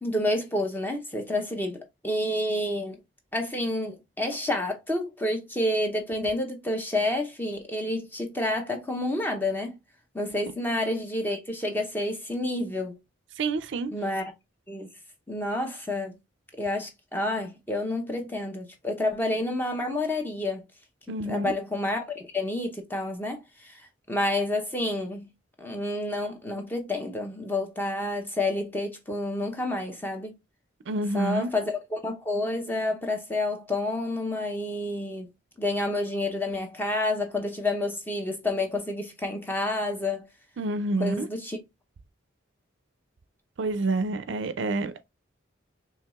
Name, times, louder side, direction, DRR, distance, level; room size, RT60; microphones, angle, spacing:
voice 1, 0.0-3.0 3.3-9.7 10.1-13.0 13.9-14.3 14.7-14.9 15.3-16.2 16.6-20.7 21.3-25.3 25.6-30.3 31.1-35.3 35.6-40.3 41.0-41.6, left 1 dB, 10° left, 0.7 m, -29 dB
voice 2, 13.4-13.9 21.1-21.5 30.9-31.5 40.6-41.3 43.6-45.1, right 2 dB, 65° right, 0.4 m, -28 dB
4.5 x 3.1 x 2.3 m
head